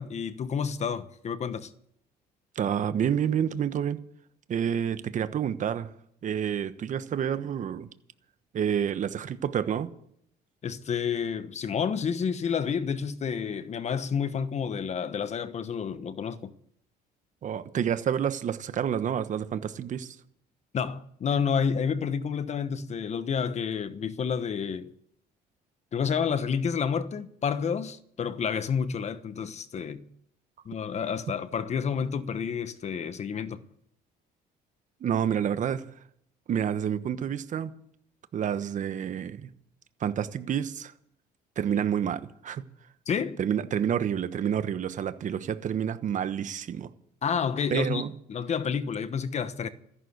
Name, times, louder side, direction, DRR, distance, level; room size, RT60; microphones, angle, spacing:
voice 1, 0.0-1.7 10.6-16.5 20.7-24.9 25.9-30.0 30.6-33.6 43.1-43.4 47.2-48.0 48.3-49.7, left 6 dB, 40° left, 1.1 m, -29 dB
voice 2, 2.5-4.0 4.5-5.9 6.2-7.9 8.5-9.9 17.4-20.2 35.0-35.8 36.5-37.7 38.3-39.5 40.0-40.9 41.6-42.6 43.4-46.9 47.7-48.1, right 8 dB, 50° right, 1.1 m, -29 dB
14.0 x 11.0 x 8.1 m
cardioid pair, 110°, 17 cm